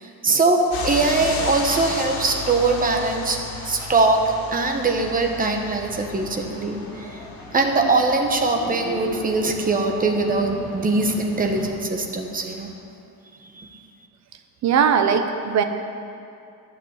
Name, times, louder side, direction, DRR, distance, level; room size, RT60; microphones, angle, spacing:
voice 1, 0.2-3.4 3.6-7.2 7.5-12.7 13.5-13.8, right 3 dB, 25° right, 3 dB, 1.1 m, -22 dB
sound 1, 0.7-12.7, left 4 dB, 80° left, 2.2 m, -35 dB
sound 2, 4.4-11.7, left 1 dB, 10° left, 2.7 m, -38 dB
voice 2, 14.6-15.6, right 7 dB, 50° right, 7 dB, 0.9 m, -19 dB
12.0 x 6.1 x 9.4 m, 2.6 s
cardioid pair, 160°, 34 cm